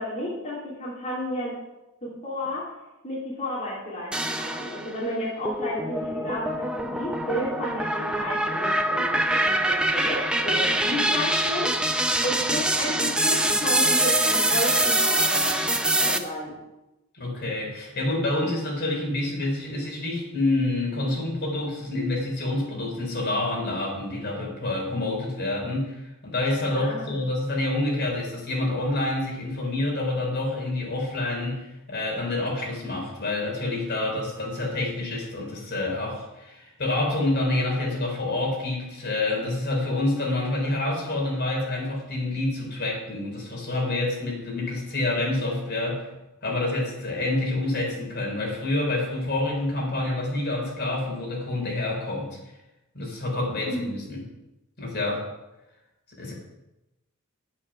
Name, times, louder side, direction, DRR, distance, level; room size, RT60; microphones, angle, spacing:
voice 1, 0.0-1.6 2.0-2.7 3.0-15.6 16.0-16.6 26.7-27.2 53.7-53.9, left 1 dB, 35° left, -8 dB, 3.1 m, -32 dB
sound 1, 4.1-5.0 5.5-16.2, right 1 dB, 5° right, 0.6 m, -24 dB
voice 2, 17.2-46.1 46.4-52.4 52.9-54.2 54.8-55.3 56.2-56.3, left 2 dB, 50° left, -1 dB, 4.0 m, -27 dB
10.0 x 8.6 x 6.0 m, 0.98 s
head